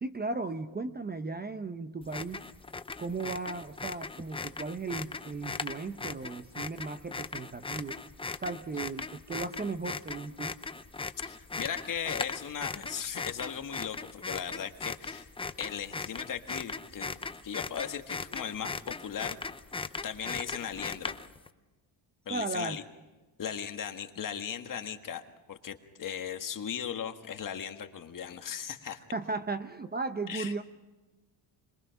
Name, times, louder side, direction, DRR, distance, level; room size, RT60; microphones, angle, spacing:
voice 1, 0.0-2.4 3.0-8.0 8.4-10.5 22.3-22.8 29.1-30.6, right 3 dB, 20° right, 10 dB, 0.8 m, -36 dB
sound 1, 2.0-21.5, left 4 dB, 10° left, 0.6 m, -39 dB
voice 2, 11.2-15.3 15.6-17.1 17.4-19.4 20.0-21.2 22.2-22.8 23.4-25.2 25.5-29.0 30.3-30.5, left 8 dB, 40° left, 6 dB, 1.7 m, -37 dB
26.5 x 22.5 x 5.8 m, 1.2 s
cardioid pair, 120°, 48 cm